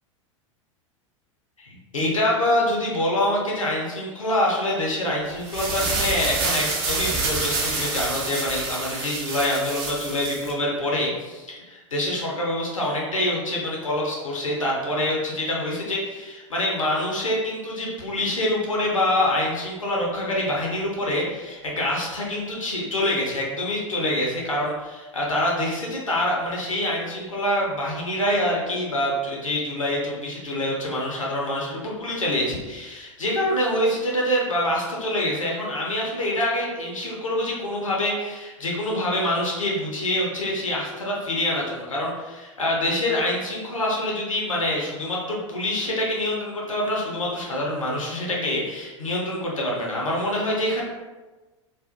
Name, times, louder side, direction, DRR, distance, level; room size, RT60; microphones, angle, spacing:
voice 1, 1.6-50.8, left 1 dB, 85° left, -3 dB, 0.7 m, -26 dB
sound 1, 5.3-10.5, right 3 dB, 55° right, 0.8 m, -27 dB
2.5 x 2.4 x 2.4 m, 1.2 s
figure-of-eight pair, 85°, 16 cm